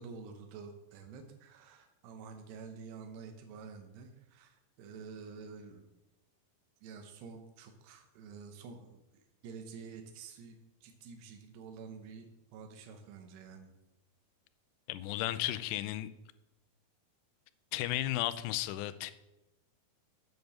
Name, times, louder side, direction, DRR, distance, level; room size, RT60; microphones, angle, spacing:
voice 1, 0.0-5.9 6.8-13.7, right 5 dB, 80° right, 3.2 m, -49 dB
voice 2, 14.9-16.1 17.7-19.1, left 14 dB, 90° left, 2.8 m, -34 dB
8.0 x 7.1 x 7.8 m
omnidirectional pair, 4.8 m